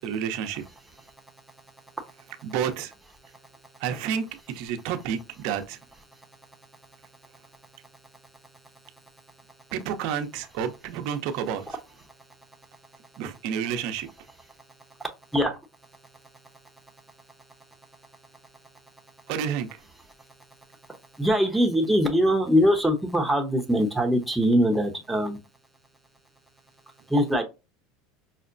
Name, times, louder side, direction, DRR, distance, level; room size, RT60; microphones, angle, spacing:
voice 1, 0.0-0.7 2.4-2.9 3.8-5.8 9.7-11.7 13.2-14.1 19.3-19.8, right 8 dB, 65° right, 0.7 m, -30 dB
voice 2, 21.2-25.4 27.1-27.4, equal, 5° right, 0.9 m, -22 dB
5.6 x 2.1 x 2.5 m
supercardioid pair, 120°, 0 cm